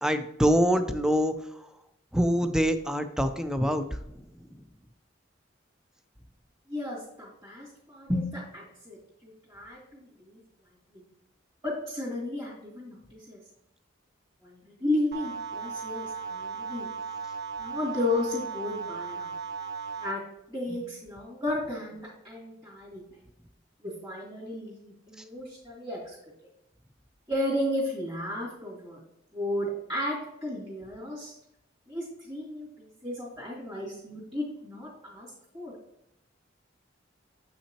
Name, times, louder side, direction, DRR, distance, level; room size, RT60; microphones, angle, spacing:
voice 1, 0.0-1.3 2.1-3.8, equal, 5° right, 10 dB, 0.4 m, -24 dB
voice 2, 6.7-9.8 10.2-10.4 10.9-11.0 11.6-13.4 14.4-16.9 17.6-19.3 20.0-20.2 20.5-23.0 23.8-26.2 27.3-29.0 29.3-31.3 31.9-35.7, left 1 dB, 20° right, -8 dB, 2.4 m, -33 dB
sound 1, 15.1-20.1, right 5 dB, 55° right, 0.6 m, -36 dB
7.4 x 5.8 x 2.9 m, 0.80 s
head